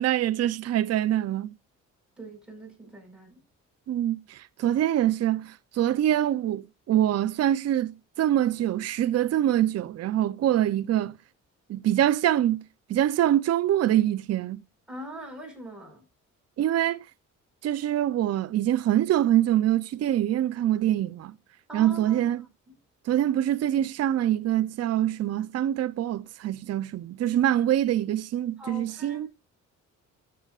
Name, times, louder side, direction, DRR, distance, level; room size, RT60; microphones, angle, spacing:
voice 1, 0.0-1.5 3.9-11.1 11.7-12.6 12.9-14.6 16.6-17.0 17.6-21.4 21.7-22.4 23.1-29.3, right 12 dB, 55° right, 0.6 m, -24 dB
voice 2, 2.2-3.4 14.9-16.0 21.7-22.3 22.7-22.8 28.6-29.3, right 1 dB, 5° right, 5.1 m, -42 dB
14.5 x 6.8 x 2.4 m
cardioid pair, 90°, 30 cm